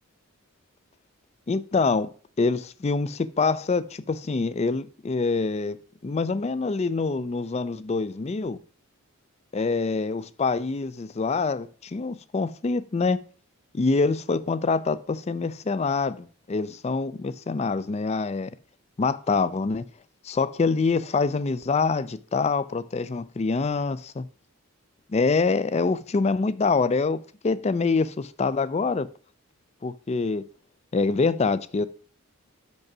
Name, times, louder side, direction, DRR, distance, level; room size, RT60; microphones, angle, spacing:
voice 1, 1.5-2.1 2.4-5.8 6.0-8.6 9.5-13.2 13.7-18.5 19.0-19.8 20.2-24.2 25.1-27.2 27.4-29.1 29.8-30.4 30.9-31.9, left 4 dB, 30° left, 0.4 m, -25 dB
6.0 x 5.3 x 6.0 m
head